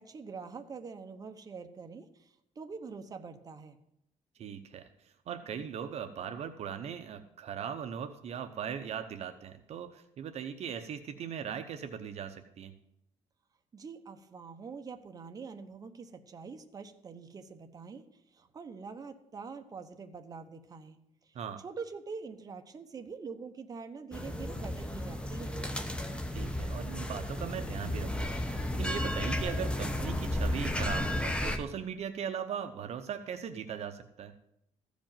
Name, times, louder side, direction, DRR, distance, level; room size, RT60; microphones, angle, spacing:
voice 1, 0.0-3.8 13.7-18.0 18.3-21.3 21.6-25.6, right 5 dB, 30° right, 6 dB, 1.0 m, -45 dB
voice 2, 4.4-12.7 21.3-21.6 26.3-34.3, right 8 dB, 55° right, 7 dB, 0.8 m, -39 dB
sound 1, 24.1-31.6, left 1 dB, 10° left, 1.0 m, -33 dB
14.5 x 5.2 x 8.9 m, 0.78 s
cardioid pair, 145°, 13 cm